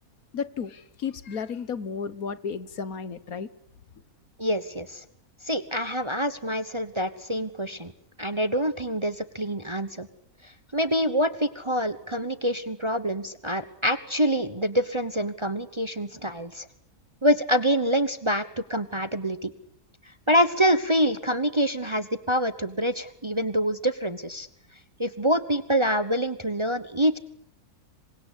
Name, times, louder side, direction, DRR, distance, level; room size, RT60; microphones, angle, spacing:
voice 1, 0.3-3.5, left 6 dB, 65° left, 1.7 m, -33 dB
voice 2, 4.4-5.0 5.4-7.9 8.2-10.1 10.4-16.7 17.2-19.5 20.3-24.5 25.0-27.2, equal, 20° right, 1.0 m, -26 dB
27.5 x 24.5 x 8.4 m
omnidirectional pair, 1.6 m